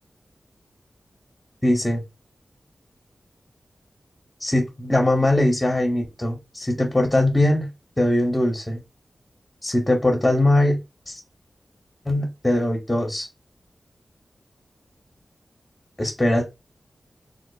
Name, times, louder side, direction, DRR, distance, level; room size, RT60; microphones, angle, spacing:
voice 1, 1.6-2.0 4.4-7.7 8.0-8.8 9.6-10.8 11.1-11.2 12.1-13.3 16.0-16.4, left 1 dB, 15° left, 2 dB, 0.8 m, -21 dB
3.8 x 2.4 x 2.3 m, 0.24 s
wide cardioid pair, 115°, 0 cm